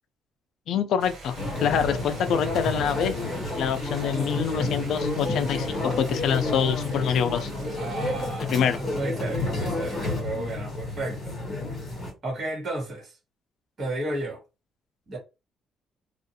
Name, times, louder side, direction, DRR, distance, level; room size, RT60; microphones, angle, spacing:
voice 1, 0.7-1.4 1.6-3.1 3.6-7.5 8.4-8.8, left 8 dB, 65° left, 0.4 m, -25 dB
sound 1, 1.0-9.7, right 3 dB, 85° right, 1.2 m, -45 dB
sound 2, 1.3-12.1, left 2 dB, 30° left, 1.4 m, -30 dB
voice 2, 7.7-11.4 12.2-13.2 13.8-14.4 15.1-15.2, right 2 dB, 35° right, 1.4 m, -33 dB
2.5 x 2.4 x 2.7 m
cardioid pair, 150°, 0 cm